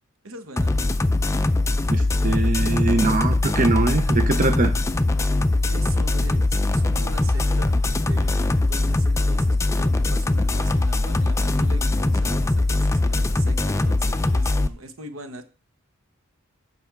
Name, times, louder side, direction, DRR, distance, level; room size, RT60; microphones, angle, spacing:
voice 1, 0.2-0.7 5.6-7.7 8.1-15.4, right 2 dB, 75° right, 9 dB, 1.0 m, -40 dB
sound 1, 0.6-14.7, left 2 dB, 15° left, 0.4 m, -21 dB
voice 2, 1.9-4.7, right 3 dB, 40° right, 7 dB, 0.7 m, -22 dB
7.9 x 5.9 x 4.6 m, 0.37 s
head